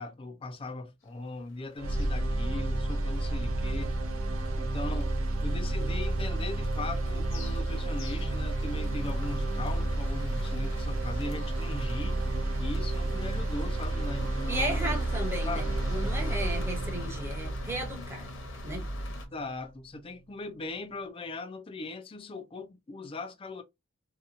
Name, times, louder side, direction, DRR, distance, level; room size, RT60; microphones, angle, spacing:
voice 1, 0.0-3.9 4.6-5.2 5.4-12.2 12.6-14.9 15.5-15.6 16.0-16.1 19.3-23.6, left 2 dB, 25° left, 0.4 m, -39 dB
sound 1, 1.5-19.3, left 1 dB, 70° left, 0.8 m, -43 dB
sound 2, 1.8-19.8, right 2 dB, 85° right, 0.5 m, -31 dB
voice 2, 14.5-18.3 18.6-18.9, right 1 dB, 10° right, 0.7 m, -35 dB
2.7 x 2.2 x 2.5 m
head